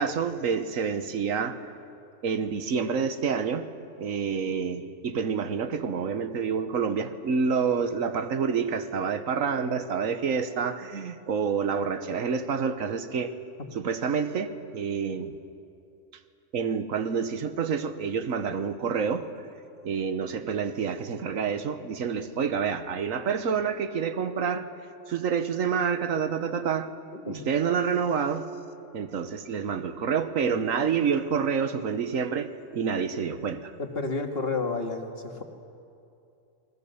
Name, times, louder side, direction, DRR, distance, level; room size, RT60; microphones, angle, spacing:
voice 1, 0.0-1.6 2.2-3.7 4.0-13.3 13.7-15.4 16.5-19.3 19.8-24.7 25.1-26.9 27.3-28.5 28.9-33.7, right 6 dB, 85° right, 10 dB, 1.5 m, -28 dB
voice 2, 27.1-27.4 33.8-35.4, left 3 dB, 50° left, 3 dB, 2.1 m, -31 dB
29.0 x 20.5 x 7.0 m, 2.6 s
omnidirectional pair, 1.4 m